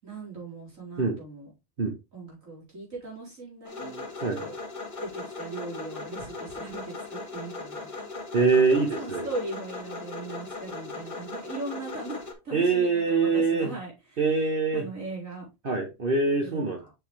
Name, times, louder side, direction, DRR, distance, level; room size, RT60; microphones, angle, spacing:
voice 1, 0.0-1.5 2.1-4.5 5.0-8.1 8.7-14.2 14.7-15.5 16.4-16.9, right 2 dB, 70° right, -4 dB, 4.6 m, -39 dB
Rough Car Motor, 3.7-12.3, left 3 dB, 35° left, 1.6 m, -38 dB
voice 2, 8.3-9.3 12.5-13.7 14.2-14.8 15.6-16.8, right 4 dB, 45° right, 2 dB, 1.2 m, -24 dB
6.8 x 5.9 x 3.2 m, 0.25 s
omnidirectional pair, 1.4 m